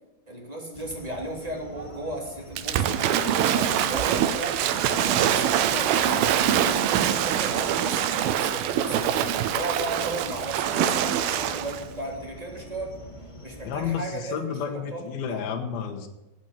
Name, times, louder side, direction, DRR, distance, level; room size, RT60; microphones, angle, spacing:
voice 1, 0.3-4.6 4.9-6.9 7.2-9.2 9.5-12.9 13.4-15.4, right 1 dB, 10° right, 0 dB, 2.6 m, -35 dB
sound 1, 0.7-14.0, equal, 10° left, 1.6 m, -44 dB
Waves surf / Splash splatter, 2.6-11.8, right 10 dB, 90° right, 2.8 m, -24 dB
voice 2, 13.6-16.1, left 7 dB, 90° left, 3 dB, 3.2 m, -31 dB
14.5 x 9.1 x 7.3 m, 1.0 s
omnidirectional pair, 4.2 m